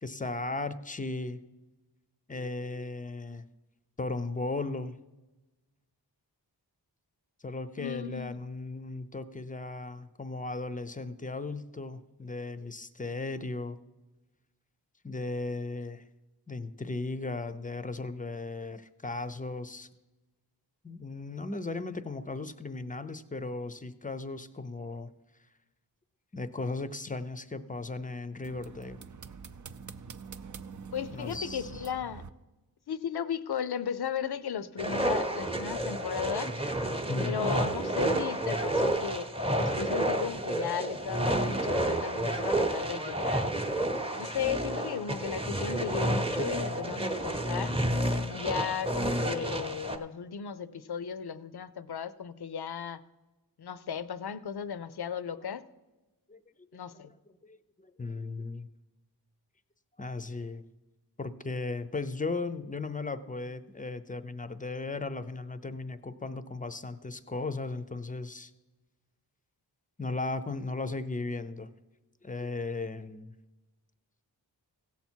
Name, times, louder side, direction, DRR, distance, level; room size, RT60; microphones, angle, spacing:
voice 1, 0.0-1.4 2.3-3.5 4.0-5.0 7.4-13.8 15.0-16.0 16.5-19.9 20.8-25.1 26.3-29.0 31.1-31.8 37.1-37.4 56.3-56.4 56.7-56.8 57.5-58.7 60.0-60.6 61.2-68.5 70.0-71.7 72.2-73.3, left 3 dB, 20° left, 12 dB, 0.6 m, -36 dB
voice 2, 7.8-8.4 30.9-32.3 32.9-36.5 37.2-43.5 44.1-47.7 48.3-53.0 53.6-55.6 56.7-57.1, left 8 dB, 60° left, 15 dB, 0.6 m, -35 dB
sound 1, 28.4-32.3, right 5 dB, 45° right, 0.5 m, -45 dB
sound 2, 34.8-50.0, right 1 dB, 15° right, 0.8 m, -30 dB
16.0 x 7.1 x 4.5 m, 1.1 s
wide cardioid pair, 70°, 43 cm